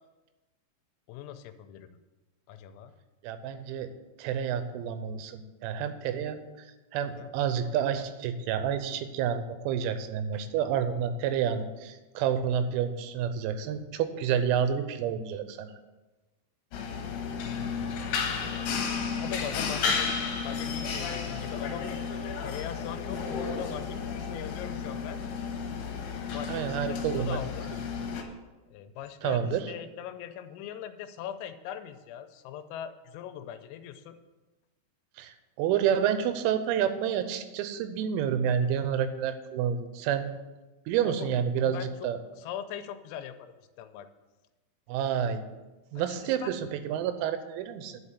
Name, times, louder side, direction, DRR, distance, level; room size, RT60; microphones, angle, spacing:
voice 1, 1.1-1.9 2.5-2.9 7.0-7.3 17.4-18.1 19.2-20.1 20.4-22.0 22.4-25.2 26.3-27.7 28.7-34.2 41.1-41.3 41.6-42.1 42.4-44.1 46.4-46.5, left 10 dB, 85° left, 9 dB, 3.3 m, -40 dB
voice 2, 3.2-3.9 4.2-6.7 6.9-15.7 26.5-27.4 29.2-29.7 35.2-40.3 40.9-42.2 44.9-45.4 45.9-48.0, right 8 dB, 90° right, 10 dB, 3.6 m, -29 dB
sound 1, 16.7-28.2, left 5 dB, 70° left, 2.8 m, -33 dB
11.0 x 5.4 x 8.3 m, 1.2 s
omnidirectional pair, 6.0 m